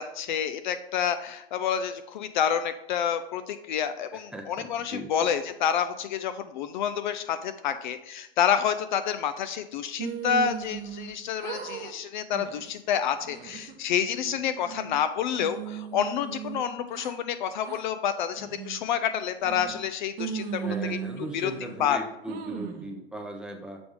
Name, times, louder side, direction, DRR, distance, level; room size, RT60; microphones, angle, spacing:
voice 1, 0.0-21.0 21.3-21.5 21.8-22.0, left 8 dB, 50° left, 11 dB, 0.4 m, -28 dB
voice 2, 4.1-5.3 20.4-23.8, right 1 dB, 5° right, 2 dB, 0.6 m, -38 dB
sound 1, 10.0-11.1 11.4-11.9 12.3-12.7 13.2-13.7 14.2-15.0 15.4-17.1 17.6-17.8 18.4-18.8 19.4-19.9 20.2-21.8 22.3-22.9, right 8 dB, 30° right, 0.8 m, -37 dB
6.9 x 3.5 x 4.7 m, 0.86 s
hypercardioid pair, 110°, 32 cm